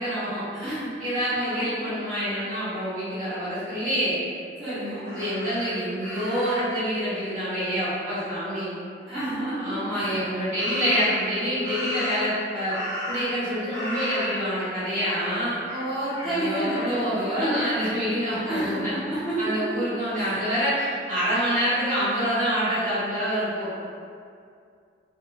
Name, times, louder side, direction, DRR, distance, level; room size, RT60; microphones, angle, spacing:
voice 1, 0.0-0.7 1.0-4.1 4.9-8.7 9.6-12.8 13.1-15.6 16.2-18.9 19.4-23.8, equal, 40° right, -13 dB, 0.9 m, -27 dB
voice 2, 0.5-0.9 1.3-1.7 4.6-5.1 9.1-10.2 15.6-17.6 18.4-19.5 20.1-20.4, right 1 dB, ahead, -16 dB, 1.0 m, -30 dB
Crow, 5.0-6.8 10.5-11.3 11.6-13.4 13.7-14.7 15.0-15.3 15.6-16.9 17.5-17.8, equal, 30° left, 0.9 m, -35 dB
2.7 x 2.5 x 2.4 m, 2.3 s
head